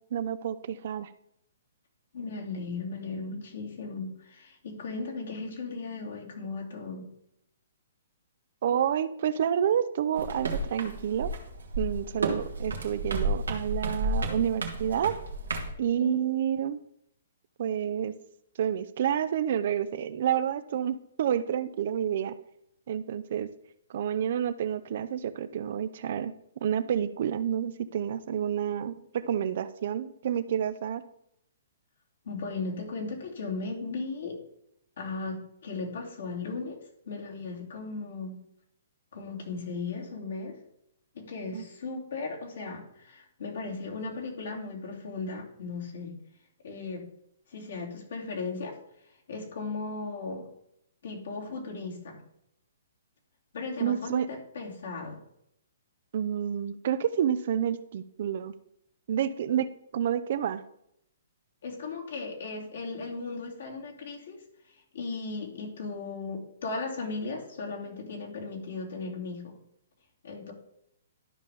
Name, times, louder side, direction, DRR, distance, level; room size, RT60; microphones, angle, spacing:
voice 1, 0.1-1.1 8.6-11.3 11.8-15.2 15.8-16.8 17.6-18.2 18.6-22.4 22.9-23.5 23.9-26.3 26.6-31.0 41.5-41.6 53.8-54.3 56.1-58.5 59.1-60.6, right 9 dB, 55° right, 14 dB, 0.5 m, -29 dB
voice 2, 2.1-7.1 16.0-16.2 32.2-34.4 35.0-38.4 39.1-40.6 41.1-46.2 46.6-47.1 47.5-48.8 49.3-50.5 51.0-52.2 53.5-55.2 61.6-64.4 64.9-69.5 70.2-70.5, left 3 dB, 70° left, -1 dB, 2.7 m, -36 dB
sound 1, 10.2-15.7, right 2 dB, 85° right, 1.6 m, -32 dB
12.5 x 5.3 x 3.5 m, 0.76 s
hypercardioid pair, 135°, 0 cm